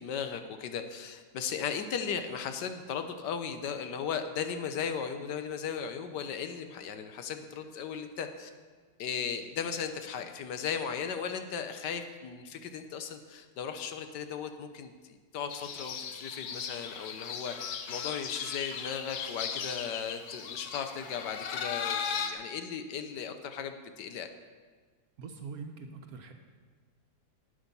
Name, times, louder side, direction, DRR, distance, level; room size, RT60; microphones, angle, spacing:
voice 1, 0.0-8.5 9.0-24.3, left 7 dB, 85° left, 8 dB, 1.4 m, -37 dB
sound 1, 15.5-22.3, left 7 dB, 70° left, 1.3 m, -37 dB
voice 2, 25.2-26.3, right 5 dB, 65° right, 5 dB, 1.3 m, -43 dB
11.0 x 9.1 x 5.4 m, 1.5 s
omnidirectional pair, 1.8 m